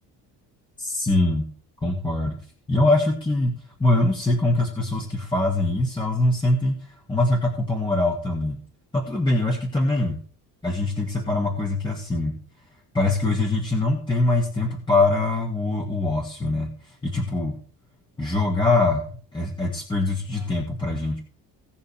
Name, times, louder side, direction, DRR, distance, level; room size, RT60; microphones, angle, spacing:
voice 1, 0.8-1.5 1.8-2.4 2.7-8.6 8.9-10.2 10.6-12.4 12.9-17.6 18.2-21.2, left 2 dB, 15° left, -2 dB, 2.2 m, -23 dB
19.0 x 6.5 x 3.4 m, 0.41 s
cardioid pair, 165°, 37 cm